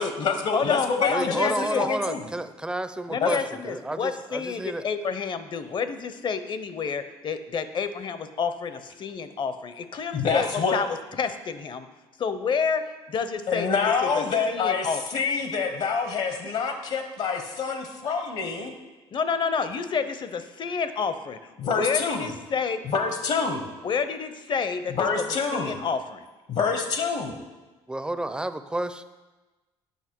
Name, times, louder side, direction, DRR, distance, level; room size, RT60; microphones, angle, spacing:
voice 1, 0.0-2.2 3.2-3.3 10.1-10.8 13.5-18.7 21.6-22.3 22.9-23.6 25.0-25.8 26.5-27.4, left 5 dB, 60° left, 6 dB, 1.0 m, -26 dB
voice 2, 0.5-1.9 3.1-10.9 11.1-11.9 12.2-12.8 13.1-13.8 14.0-15.0 19.1-22.8 23.8-25.2 25.5-26.2, left 6 dB, 40° left, 11 dB, 0.6 m, -29 dB
voice 3, 1.1-3.4 3.6-4.8 27.9-29.0, right 2 dB, 5° right, 11 dB, 0.5 m, -30 dB
8.1 x 5.7 x 4.5 m, 1.2 s
supercardioid pair, 80°, 12 cm